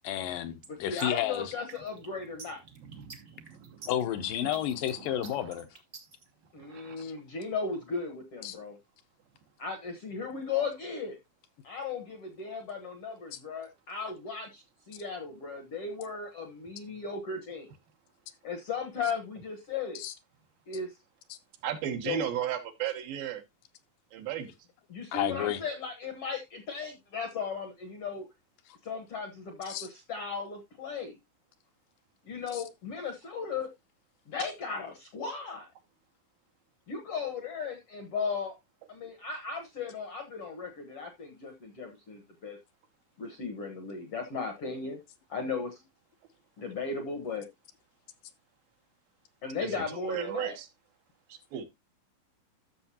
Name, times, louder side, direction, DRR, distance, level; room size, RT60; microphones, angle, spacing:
voice 1, 0.1-1.5 3.9-5.7 7.0-7.1 8.4-8.6 13.3-13.4 20.0-20.1 21.3-21.4 25.1-25.6 29.7-29.9 32.5-32.6, left 11 dB, 75° left, 2.3 m, -32 dB
sound 1, 0.6-6.2, right 4 dB, 60° right, 1.0 m, -48 dB
voice 2, 0.8-2.6 6.5-8.8 9.6-11.2 11.6-17.7 18.4-20.0 20.7-20.9 22.0-22.2 24.9-28.3 28.8-31.2 32.2-33.7 34.3-35.7 36.9-38.5 38.9-42.6 43.2-45.0 45.3-45.8 46.6-47.5 49.4-50.6, left 5 dB, 60° left, 1.6 m, -36 dB
voice 3, 2.8-3.9 4.4-4.5 5.0-5.5 6.6-7.1 21.6-23.4 24.1-24.5 49.6-50.7 51.3-51.6, right 10 dB, 80° right, 3.0 m, -36 dB
13.0 x 6.5 x 2.8 m
omnidirectional pair, 4.2 m